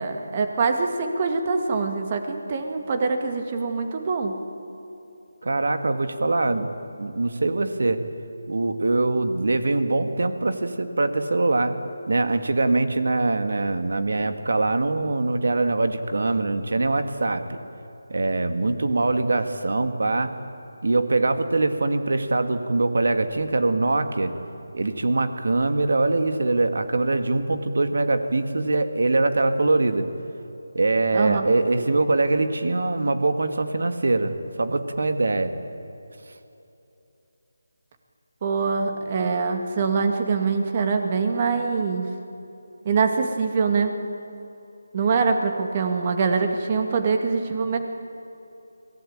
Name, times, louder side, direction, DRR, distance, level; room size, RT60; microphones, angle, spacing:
voice 1, 0.0-4.3 31.1-31.5 38.4-42.0 42.9-43.9 44.9-47.8, right 4 dB, 30° right, 5 dB, 2.1 m, -24 dB
voice 2, 5.4-6.7 7.0-8.0 8.5-11.7 12.1-17.6 18.1-20.3 20.8-24.3 24.7-30.1 30.7-35.5, right 2 dB, 70° right, 8 dB, 2.0 m, -23 dB
24.5 x 18.0 x 8.9 m, 2.9 s
figure-of-eight pair, 170°, 0 cm